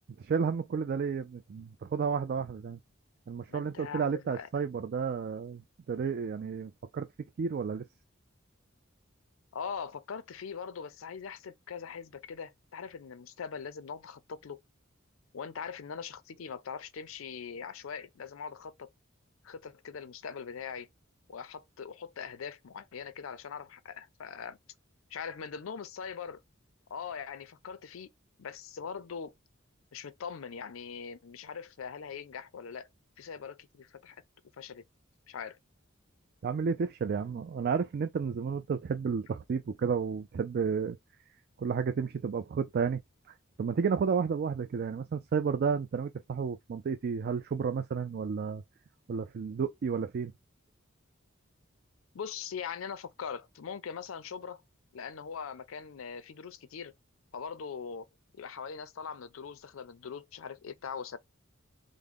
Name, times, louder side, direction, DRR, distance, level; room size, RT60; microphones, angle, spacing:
voice 1, 0.3-2.8 3.3-5.6 5.9-7.1 7.4-7.9 36.4-41.0 41.6-43.0 43.6-48.6 49.1-50.3, right 6 dB, 50° right, 0.4 m, -31 dB
voice 2, 3.5-4.5 9.5-14.6 15.3-18.9 19.4-20.9 21.3-24.6 25.1-26.4 26.9-28.1 28.4-29.3 29.9-32.9 33.2-34.2 34.6-34.8 35.3-35.6 52.1-54.6 54.9-56.9 57.3-58.1 58.3-61.2, left 6 dB, 80° left, 0.5 m, -41 dB
3.5 x 2.1 x 3.5 m
head